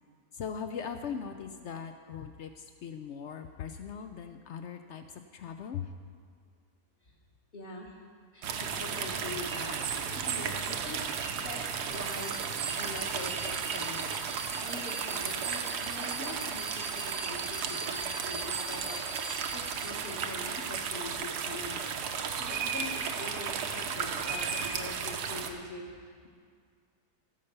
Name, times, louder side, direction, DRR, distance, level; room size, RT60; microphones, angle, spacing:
voice 1, 0.3-5.9, left 7 dB, 75° left, 7 dB, 0.6 m, -40 dB
voice 2, 7.5-8.0 8.3-11.0 11.4-12.4 12.8-21.9 22.2-26.3, left 3 dB, 35° left, -4 dB, 1.3 m, -44 dB
sound 1, 8.4-25.5, right 6 dB, 80° right, 1.4 m, -34 dB
sound 2, 11.9-20.4, right 3 dB, 55° right, 0.6 m, -43 dB
15.5 x 5.5 x 6.7 m, 2.1 s
omnidirectional pair, 1.7 m